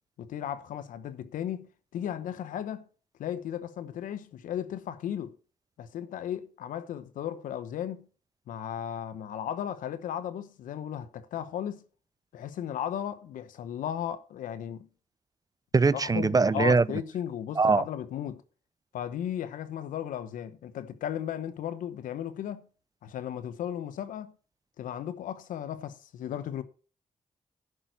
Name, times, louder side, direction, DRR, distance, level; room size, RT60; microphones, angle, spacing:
voice 1, 0.2-2.8 3.2-5.4 5.8-8.1 8.5-11.8 12.3-14.9 15.9-18.4 18.9-22.7 23.0-24.3 24.8-26.6, left 10 dB, 85° left, 0.9 m, -35 dB
voice 2, 15.7-16.8 17.6-17.8, right 4 dB, 30° right, 0.5 m, -22 dB
11.0 x 6.0 x 6.5 m
supercardioid pair, 55°, 13 cm